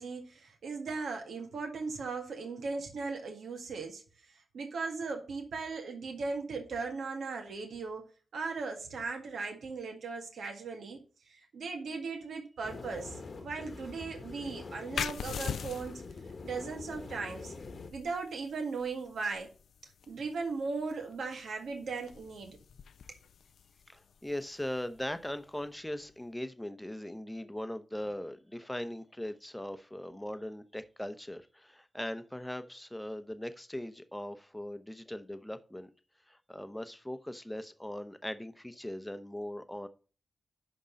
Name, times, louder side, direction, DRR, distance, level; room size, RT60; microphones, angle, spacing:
voice 1, 0.0-8.1 8.3-16.0 16.4-17.5 17.9-19.5 20.1-22.6, right 4 dB, 85° right, 1.8 m, -38 dB
sound 1, 12.6-17.9, left 4 dB, 50° left, 1.1 m, -45 dB
sound 2, 14.9-26.2, left 7 dB, 85° left, 0.4 m, -44 dB
voice 2, 23.9-35.9 36.3-39.9, left 1 dB, 5° left, 0.8 m, -40 dB
11.0 x 3.9 x 5.2 m
wide cardioid pair, 115°, 0 cm